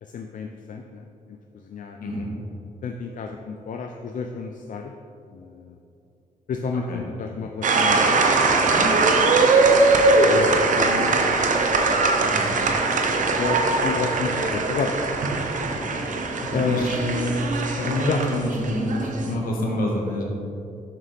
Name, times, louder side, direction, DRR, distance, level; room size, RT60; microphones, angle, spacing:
voice 1, 0.0-2.0 2.8-4.9 5.3-5.8 6.5-8.3 8.6-9.1 10.3-11.6 13.3-14.9 16.5-16.9 18.1-18.2, left 5 dB, 65° left, 4 dB, 0.5 m, -31 dB
voice 2, 6.7-7.0 12.2-12.6 16.4-17.3 17.7-20.2, left 1 dB, 80° left, -1 dB, 1.5 m, -27 dB
sound 1, 7.6-19.3, right 3 dB, 60° right, 0.8 m, -21 dB
7.2 x 6.5 x 3.4 m, 2.6 s
cardioid pair, 80°, 15 cm